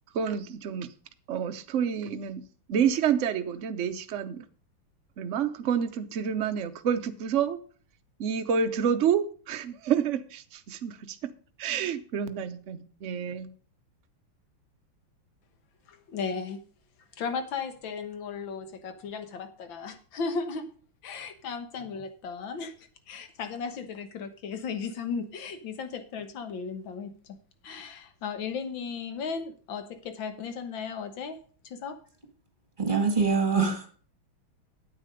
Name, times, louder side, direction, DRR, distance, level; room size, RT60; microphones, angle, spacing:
voice 1, 0.1-0.9 1.3-2.4 2.7-4.4 5.2-7.6 8.2-11.2 11.6-13.5, right 7 dB, 65° right, 9 dB, 0.7 m, -28 dB
voice 2, 15.9-16.6 17.2-20.7 21.0-27.4 27.6-31.4 31.6-32.0, left 5 dB, 65° left, 8 dB, 2.0 m, -36 dB
voice 3, 32.8-33.9, right 5 dB, 25° right, 6 dB, 1.9 m, -24 dB
9.1 x 8.6 x 5.1 m, 0.42 s
omnidirectional pair, 2.3 m